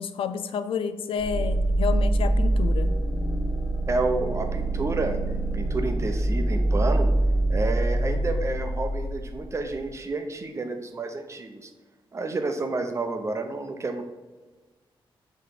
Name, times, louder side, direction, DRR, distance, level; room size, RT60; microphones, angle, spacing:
voice 1, 0.0-2.9, left 6 dB, 80° left, 11 dB, 0.4 m, -30 dB
sound 1, 1.2-9.9, right 1 dB, 35° left, 1.0 m, -25 dB
voice 2, 3.9-5.2 5.5-7.1 7.5-11.7 12.1-14.0, right 3 dB, 30° right, 5 dB, 0.8 m, -30 dB
8.1 x 3.2 x 4.9 m, 1.2 s
wide cardioid pair, 125°, 9 cm